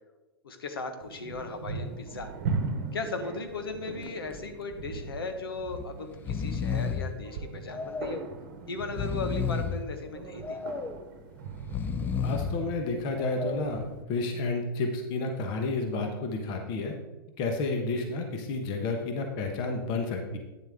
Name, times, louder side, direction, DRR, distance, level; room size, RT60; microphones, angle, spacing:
voice 1, 0.4-2.3 2.9-8.2 8.7-10.6, left 3 dB, 75° left, 6 dB, 1.4 m, -37 dB
sound 1, 1.0-14.0, right 4 dB, 50° right, 1.1 m, -39 dB
Breathing, 4.0-4.4 4.7-4.8 5.7-5.9 6.1-7.1 7.7-8.3 8.8-9.8 10.4-11.0 11.6-12.6 13.2-13.8, left 6 dB, 15° left, 0.5 m, -32 dB
voice 2, 12.2-16.9 17.4-20.4, left 3 dB, 35° left, 3 dB, 1.3 m, -31 dB
9.8 x 7.2 x 3.7 m, 1.2 s
hypercardioid pair, 115°, 12 cm